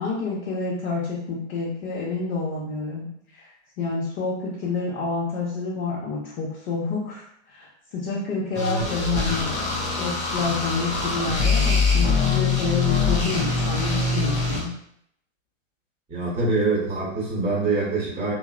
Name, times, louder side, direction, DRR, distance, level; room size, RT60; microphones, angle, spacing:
voice 1, 0.0-3.1 3.3-3.5 3.8-9.5 10.0-14.7, left 4 dB, 50° left, -6 dB, 0.8 m, -28 dB
sound 1, 8.5-14.6, left 4 dB, 20° left, 0.4 m, -23 dB
voice 2, 16.1-18.3, right 3 dB, 15° right, -7 dB, 1.0 m, -24 dB
2.9 x 2.1 x 2.4 m, 0.71 s
figure-of-eight pair, 100°, 40 cm